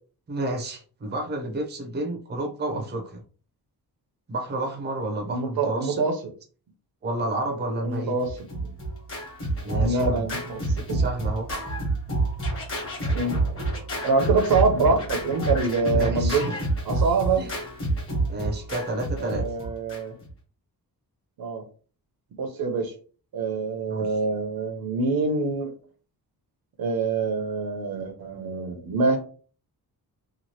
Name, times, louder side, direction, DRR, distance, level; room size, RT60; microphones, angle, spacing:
voice 1, 0.3-3.2 4.3-6.0 7.0-8.1 9.6-10.3 10.9-11.5 15.9-16.5 17.4-17.5 18.3-19.4 23.9-24.2, right 2 dB, 25° right, 1 dB, 0.6 m, -30 dB
voice 2, 5.3-6.1 7.8-8.3 8.6-8.7 9.8-10.6 10.9-11.0 13.1-13.4 14.0-16.4 16.9-17.5 19.2-20.1 21.4-21.6 22.4-22.9 23.3-25.7 26.8-29.2, right 3 dB, 65° right, 5 dB, 0.7 m, -25 dB
Scratching (performance technique), 8.2-20.3, right 2 dB, 30° left, 1.2 m, -28 dB
2.9 x 2.4 x 2.8 m, 0.39 s
wide cardioid pair, 175°, 40 cm